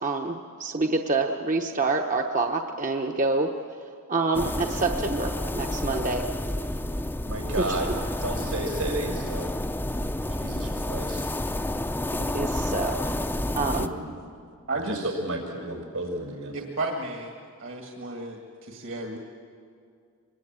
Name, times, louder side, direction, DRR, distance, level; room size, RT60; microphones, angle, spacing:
voice 1, 0.0-3.5 4.1-6.2 7.6-7.8 12.1-13.2 13.5-13.9, right 3 dB, 35° right, 3 dB, 1.0 m, -27 dB
sound 1, 4.3-13.9, left 1 dB, 10° left, 0.6 m, -30 dB
voice 2, 7.2-7.9 8.2-9.5 10.3-11.2 13.6-14.2 14.7-16.6, right 2 dB, 85° right, 1 dB, 5.8 m, -32 dB
voice 3, 14.7-15.1 16.5-17.3 17.6-19.2, right 2 dB, 60° right, 2 dB, 2.0 m, -33 dB
24.5 x 21.5 x 9.0 m, 2.3 s
head